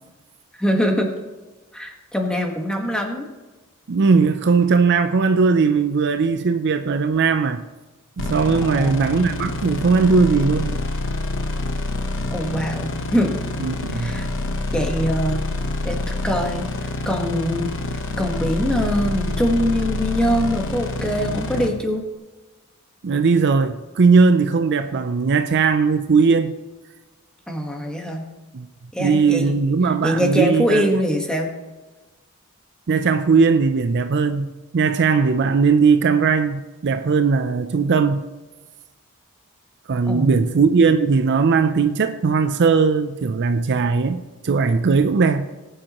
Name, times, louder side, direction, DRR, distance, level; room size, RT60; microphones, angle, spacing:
voice 1, 0.5-1.1 1.7-3.2 8.6-9.0 9.4-9.5 12.3-13.3 13.9-14.3 14.7-15.4 15.8-16.0 16.2-16.7 17.0-17.7 18.2-22.0 27.5-28.2 28.9-29.5 30.0-31.5 40.1-40.4, equal, 5° left, 1.3 m, -23 dB
voice 2, 3.9-7.6 8.2-10.8 13.6-14.2 23.0-26.5 28.5-28.7 29.0-30.9 32.9-38.3 39.9-45.5, right 5 dB, 50° right, 0.5 m, -18 dB
sound 1, 8.2-21.7, left 2 dB, 60° left, 1.0 m, -27 dB
19.5 x 8.9 x 3.0 m
head